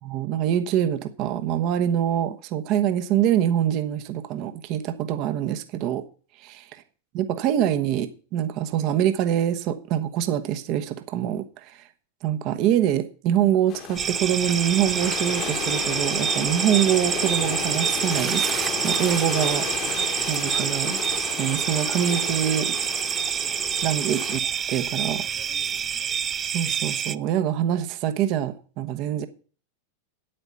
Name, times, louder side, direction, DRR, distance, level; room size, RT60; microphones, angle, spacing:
voice 1, 0.0-6.1 6.4-6.7 7.1-11.9 12.2-19.7 20.3-21.0 21.4-22.8 23.8-24.4 24.7-25.3 26.5-29.3, right 10 dB, 40° right, 1.2 m, -25 dB
sound 1, 13.7-24.4, left 10 dB, 35° left, 1.4 m, -33 dB
sound 2, 14.0-27.2, right 8 dB, 25° right, 0.4 m, -27 dB
9.4 x 8.9 x 5.7 m
figure-of-eight pair, 90°, 0 cm